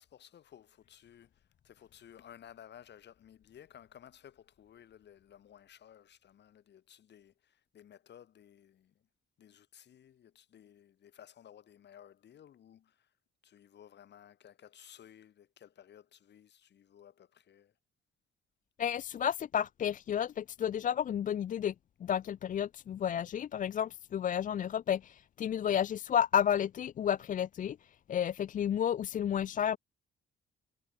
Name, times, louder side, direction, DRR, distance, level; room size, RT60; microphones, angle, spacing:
voice 1, 0.0-8.9 9.4-13.1 13.4-17.7, left 10 dB, 60° left, 2.0 m, -56 dB
voice 2, 18.8-21.7 22.0-29.8, left 9 dB, 40° left, 0.4 m, -31 dB
cardioid pair, 90°, 20 cm